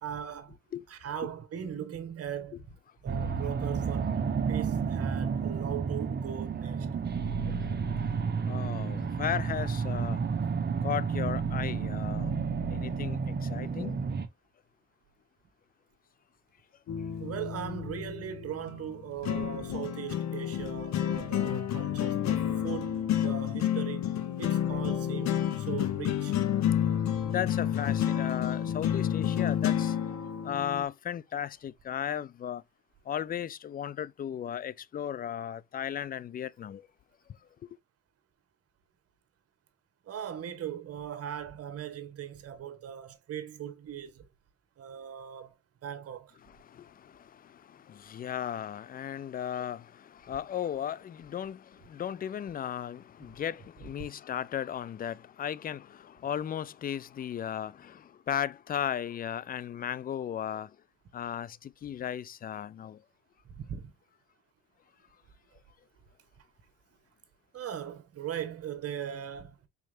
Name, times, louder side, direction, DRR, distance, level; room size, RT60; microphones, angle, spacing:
voice 1, 0.0-0.6 0.9-2.7 3.0-4.2 4.5-6.9 8.8-8.9 17.2-24.1 24.4-26.3 40.1-44.3 44.8-45.5 45.8-46.3 53.8-53.9 63.4-63.9 67.5-69.6, right 9 dB, 50° right, 1.2 m, -39 dB
sound 1, 3.1-14.3, right 5 dB, 35° right, 0.9 m, -31 dB
voice 2, 8.5-10.2 10.8-12.4 12.7-14.0 27.2-30.0 30.4-32.6 33.1-36.9 37.6-37.7 46.4-60.7 61.1-63.0, left 9 dB, 30° left, 0.4 m, -36 dB
sound 2, 16.9-30.8, left 10 dB, 60° left, 1.0 m, -30 dB
4.5 x 4.1 x 2.6 m
hypercardioid pair, 55°, 31 cm